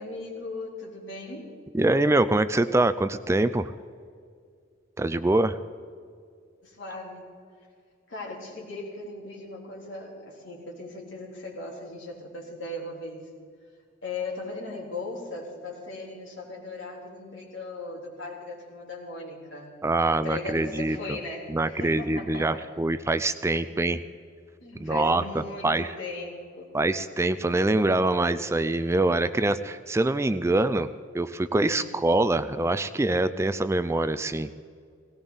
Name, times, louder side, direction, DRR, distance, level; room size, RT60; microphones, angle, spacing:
voice 1, 0.0-1.5 6.6-7.2 8.1-13.3 14.0-19.8 20.2-22.7 23.6-23.7 24.6-26.7 31.6-31.9, left 2 dB, 80° left, -2 dB, 3.7 m, -38 dB
voice 2, 1.7-3.7 5.0-5.6 19.8-21.2 21.5-24.0 24.8-26.0 26.7-34.5, right 2 dB, 15° right, 12 dB, 0.4 m, -24 dB
18.0 x 18.0 x 4.0 m, 2.2 s
head